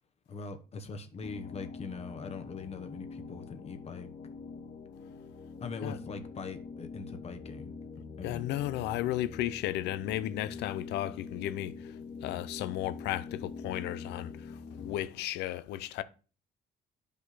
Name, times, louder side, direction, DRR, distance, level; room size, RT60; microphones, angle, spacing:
voice 1, 0.3-4.1 5.6-7.7 8.2-8.5, left 4 dB, 40° left, 1.0 m, -42 dB
sound 1, 1.2-15.0, left 4 dB, 60° left, 1.9 m, -44 dB
voice 2, 8.2-11.9 12.2-16.0, left 14 dB, 85° left, 0.6 m, -34 dB
10.0 x 5.3 x 4.1 m
cardioid pair, 110°, 17 cm